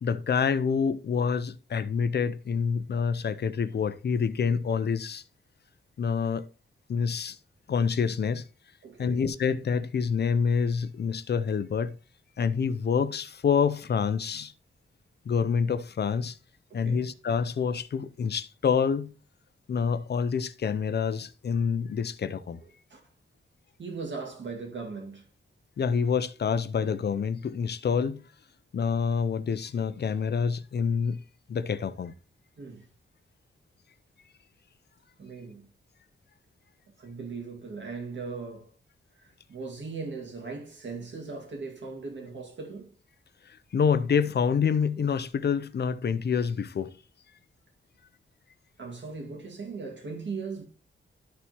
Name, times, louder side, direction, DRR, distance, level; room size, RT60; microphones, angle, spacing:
voice 1, 0.0-5.2 6.0-6.5 6.9-7.4 7.7-8.4 9.0-11.9 12.4-14.5 15.3-16.4 16.7-19.1 19.7-22.6 25.8-28.2 28.7-31.2 31.5-32.1 43.7-47.0, left 6 dB, 55° left, 0.6 m, -27 dB
voice 2, 8.8-9.2 16.7-17.1 22.9-23.0 23.8-25.2 32.6-32.8 35.2-35.7 37.0-38.7 39.2-42.9 48.8-50.7, right 4 dB, 65° right, 2.1 m, -38 dB
12.5 x 4.2 x 3.0 m
wide cardioid pair, 120°, 20 cm